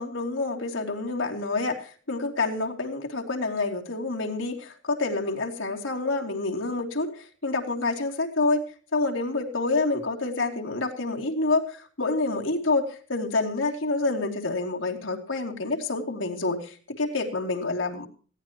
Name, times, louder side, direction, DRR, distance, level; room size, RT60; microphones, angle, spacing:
voice 1, 0.0-8.7 8.9-18.1, left 3 dB, 90° left, 1 dB, 2.9 m, -28 dB
20.0 x 16.0 x 2.9 m, 0.41 s
head